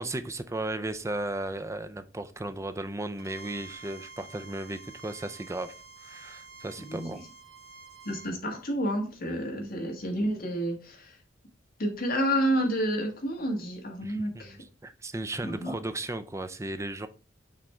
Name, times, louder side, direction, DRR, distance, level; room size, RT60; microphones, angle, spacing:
voice 1, 0.0-7.2 9.6-9.7 14.0-17.1, right 2 dB, 15° right, 0.5 m, -35 dB
Bowed string instrument, 3.2-8.4, right 4 dB, 55° right, 1.1 m, -49 dB
voice 2, 6.8-7.2 8.0-11.2 11.8-14.6 15.4-15.7, equal, 50° left, 1.5 m, -30 dB
6.2 x 3.5 x 4.3 m
head